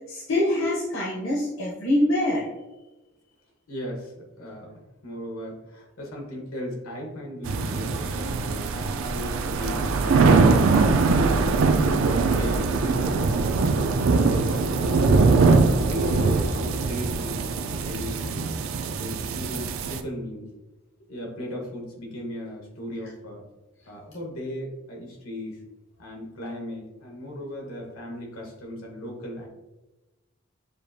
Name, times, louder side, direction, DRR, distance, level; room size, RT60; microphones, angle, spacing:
voice 1, 0.1-2.5, left 1 dB, 65° left, -4 dB, 0.8 m, -24 dB
voice 2, 3.7-4.7 5.0-8.7 9.0-11.6 12.3-13.9 14.2-15.1 15.8-18.5 18.9-20.5 21.1-23.4 23.9-25.6 26.0-29.5, equal, 90° left, 0 dB, 1.2 m, -37 dB
sound 1, 7.4-20.0, right 4 dB, 80° right, 0.4 m, -22 dB
6.7 x 2.4 x 2.6 m, 1.1 s
head